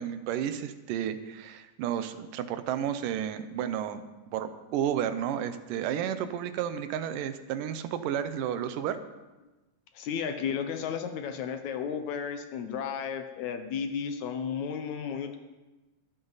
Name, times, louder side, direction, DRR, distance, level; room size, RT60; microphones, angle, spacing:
voice 1, 0.0-4.0 4.3-9.0, right 9 dB, 85° right, 11 dB, 2.4 m, -32 dB
voice 2, 9.9-15.4, left 7 dB, 70° left, 7 dB, 2.0 m, -33 dB
23.0 x 7.8 x 4.0 m, 1.1 s
omnidirectional pair, 3.7 m